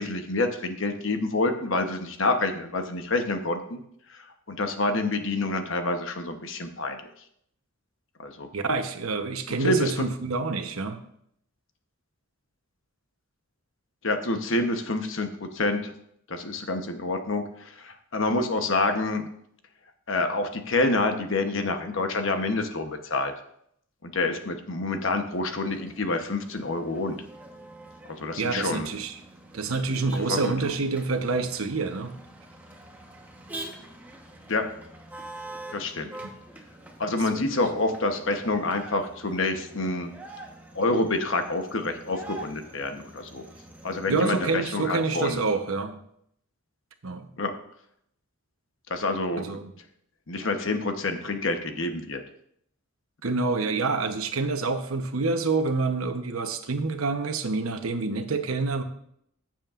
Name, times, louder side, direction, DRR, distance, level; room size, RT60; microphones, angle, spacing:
voice 1, 0.0-3.8 4.1-7.1 8.2-8.5 9.6-9.9 14.0-15.9 16.3-19.3 20.1-23.3 24.0-27.2 28.2-28.9 30.3-30.7 34.5-34.7 35.7-36.1 37.0-40.1 40.7-43.4 43.8-45.4 47.4-47.5 48.9-49.5 50.3-52.2, left 2 dB, 65° left, 6 dB, 1.0 m, -27 dB
voice 2, 8.5-11.0 28.4-29.1 29.5-32.1 37.3-37.4 44.1-46.0 47.0-47.3 49.4-49.7 53.2-58.8, right 3 dB, 80° right, 7 dB, 0.9 m, -27 dB
Motor vehicle (road), 25.3-44.5, right 2 dB, 10° right, 1.1 m, -45 dB
14.5 x 7.5 x 2.5 m, 0.70 s
head